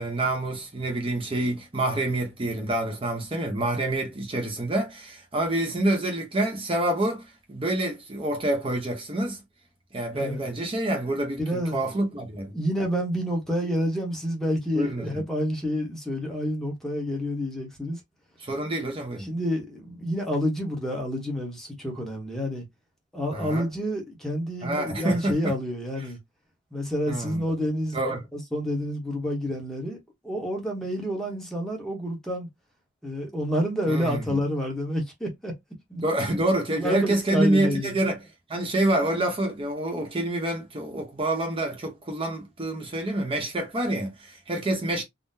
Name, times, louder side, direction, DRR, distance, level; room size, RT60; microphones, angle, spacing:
voice 1, 0.0-9.4 9.9-12.5 14.7-15.2 18.4-19.3 23.3-23.7 24.6-25.5 27.1-27.4 27.9-28.2 33.9-34.3 36.0-38.2 38.5-45.0, right 1 dB, 30° right, 0.7 m, -27 dB
voice 2, 11.4-11.8 12.5-18.0 19.2-22.6 23.1-26.2 26.7-28.0 28.3-30.0 30.2-32.5 33.0-35.5 35.9-36.0 36.7-38.0, equal, 5° left, 0.9 m, -28 dB
3.7 x 2.0 x 2.6 m
head